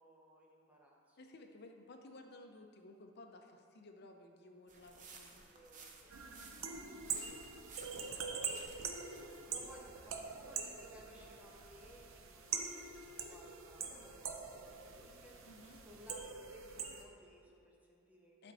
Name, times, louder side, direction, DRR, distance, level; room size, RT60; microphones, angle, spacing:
voice 1, 0.0-1.2 5.3-6.2 6.5-6.8 7.8-8.6 9.5-18.5, equal, 5° right, -3 dB, 1.1 m, -61 dB
voice 2, 1.2-5.4 15.4-15.8 18.4-18.5, left 2 dB, 55° left, 4 dB, 0.7 m, -56 dB
sound 1, 4.7-10.2, right 4 dB, 40° right, 0.8 m, -57 dB
sound 2, 6.1-17.0, right 5 dB, 75° right, 0.7 m, -44 dB
11.0 x 4.4 x 4.1 m, 2.5 s
head